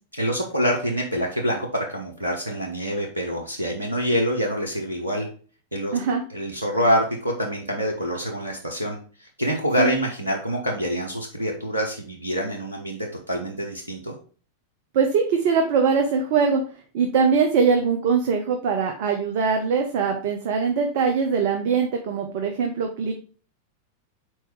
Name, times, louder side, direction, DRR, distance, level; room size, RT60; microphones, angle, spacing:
voice 1, 0.1-5.3 5.7-6.0 6.3-14.2, equal, 80° right, 0 dB, 0.9 m, -26 dB
voice 2, 14.9-16.6 16.9-23.1, right 5 dB, 50° right, 3 dB, 0.8 m, -22 dB
4.5 x 4.5 x 4.8 m, 0.41 s
figure-of-eight pair, 90°, 0 cm